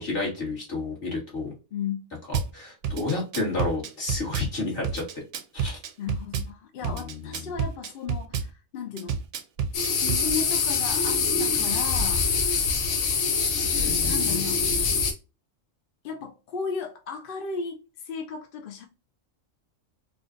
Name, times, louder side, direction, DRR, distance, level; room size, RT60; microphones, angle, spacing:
voice 1, 0.0-1.5 2.3-5.0 5.5-5.8 6.8-7.3 13.7-14.4, left 3 dB, 45° left, 1.8 m, -31 dB
voice 2, 1.7-2.1 6.0-9.2 10.0-12.3 13.6-13.7 14.1-14.6 16.0-18.9, left 6 dB, 60° left, 0.6 m, -35 dB
Drum kit / Bass drum, 2.3-2.5 2.8-4.5 4.8-6.5 6.8-8.5 9.0-10.2, right 6 dB, 70° right, 0.8 m, -29 dB
sound 1, 9.7-15.1, left 5 dB, 85° left, 1.2 m, -24 dB
4.3 x 2.3 x 2.4 m
omnidirectional pair, 1.4 m